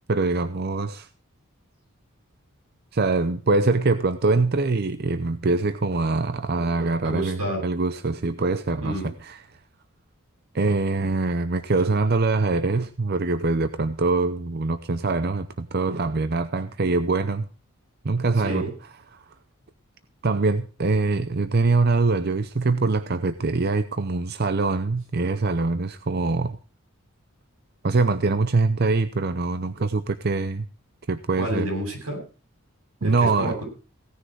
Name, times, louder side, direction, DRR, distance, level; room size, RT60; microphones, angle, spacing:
voice 1, 0.1-1.1 2.9-9.4 10.5-17.5 18.0-18.7 19.1-19.2 20.2-26.6 27.8-30.7 31.1-31.7 33.0-33.5, right 3 dB, 45° right, 0.6 m, -23 dB
voice 2, 7.0-7.7 8.8-9.1 18.4-18.7 31.4-32.2 33.0-33.6, right 1 dB, 85° right, 7.9 m, -29 dB
17.0 x 9.9 x 4.6 m
head